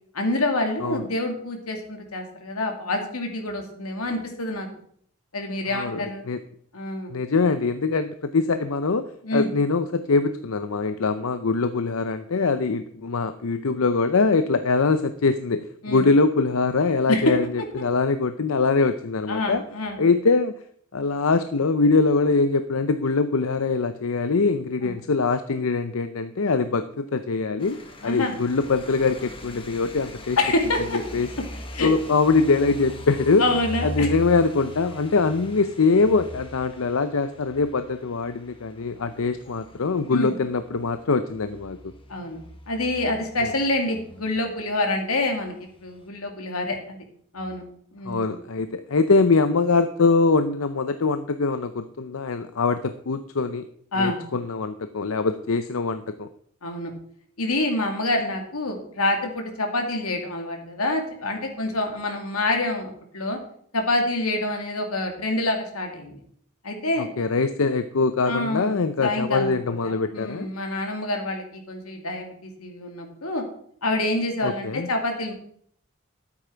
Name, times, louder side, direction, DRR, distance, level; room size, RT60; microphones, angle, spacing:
voice 1, 0.1-4.7 5.3-6.2 6.7-7.1 9.2-9.5 15.8-16.1 17.1-17.4 19.3-20.0 24.8-24.9 28.0-28.3 30.4-31.0 31.7-31.9 33.4-34.1 40.1-40.3 42.1-42.4 42.7-47.0 47.3-47.6 47.9-48.4 53.9-54.2 56.6-56.9 57.4-63.4 63.7-66.2 66.6-67.1 68.3-73.4 73.8-75.3, left 2 dB, 90° left, 3 dB, 2.4 m, -27 dB
voice 2, 5.7-6.4 7.1-9.1 9.3-17.5 17.7-19.6 20.0-20.5 20.9-30.4 31.1-31.3 31.8-33.4 33.8-41.9 48.1-53.7 54.0-56.3 67.2-70.5 74.4-74.9, left 4 dB, 75° left, 10 dB, 0.6 m, -23 dB
sound 1, 27.6-44.9 45.2-46.1, equal, 25° left, 1.4 m, -41 dB
13.0 x 8.6 x 4.5 m, 0.62 s
head